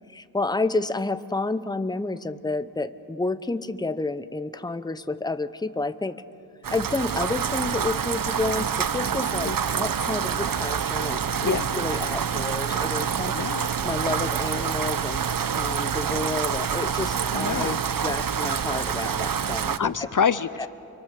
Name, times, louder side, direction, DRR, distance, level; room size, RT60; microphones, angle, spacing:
voice 1, 0.1-6.2 6.7-13.4 13.8-20.1 20.6-20.7, left 3 dB, 10° left, 12 dB, 0.7 m, -30 dB
Rain, 6.6-19.8, right 7 dB, 60° right, 0.7 m, -27 dB
voice 2, 13.3-13.7 17.3-17.8 19.8-20.7, left 6 dB, 55° left, 14 dB, 0.6 m, -26 dB
29.5 x 24.0 x 6.6 m, 2.9 s
wide cardioid pair, 90°, 38 cm